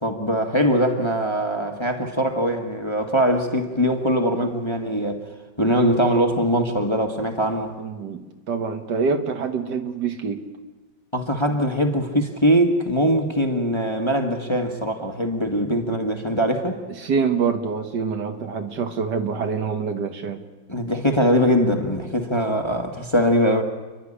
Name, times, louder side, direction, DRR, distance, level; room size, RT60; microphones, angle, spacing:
voice 1, 0.0-5.2 5.6-7.7 11.1-16.8 20.7-23.6, equal, 15° left, 1.5 m, -22 dB
voice 2, 7.8-10.4 17.0-20.4, right 5 dB, 65° right, 1.9 m, -25 dB
28.5 x 12.0 x 9.9 m
omnidirectional pair, 2.0 m